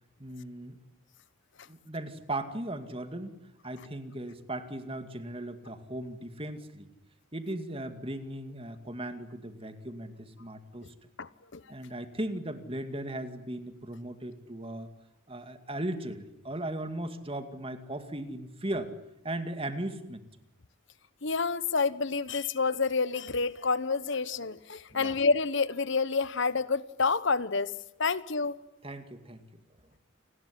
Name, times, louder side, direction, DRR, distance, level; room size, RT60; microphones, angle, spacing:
voice 1, 0.2-0.8 1.7-3.4 3.6-6.9 7.3-10.9 11.7-14.9 15.3-18.9 19.2-20.3 24.9-25.1 28.8-29.5, right 1 dB, 25° right, 9 dB, 2.3 m, -37 dB
voice 2, 11.2-11.6 21.2-27.7 28.0-28.5, left 4 dB, 55° left, 16 dB, 1.0 m, -28 dB
29.5 x 20.0 x 10.0 m, 0.88 s
head